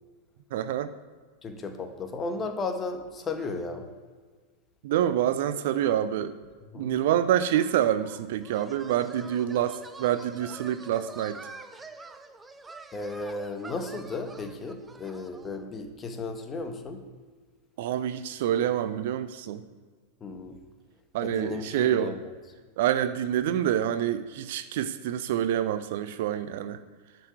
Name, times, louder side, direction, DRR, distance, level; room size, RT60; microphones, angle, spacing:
voice 1, 0.5-0.9 4.8-6.4 6.8-11.4 17.8-19.6 21.1-22.1 22.8-26.8, right 10 dB, 55° right, 12 dB, 0.6 m, -27 dB
voice 2, 1.4-3.9 6.7-7.0 12.9-17.0 20.2-20.6 21.2-22.3, left 3 dB, 20° left, 6 dB, 1.6 m, -35 dB
sound 1, 7.5-15.6, right 3 dB, 10° right, 0.8 m, -46 dB
11.5 x 6.1 x 8.2 m, 1.5 s
figure-of-eight pair, 90°, 0 cm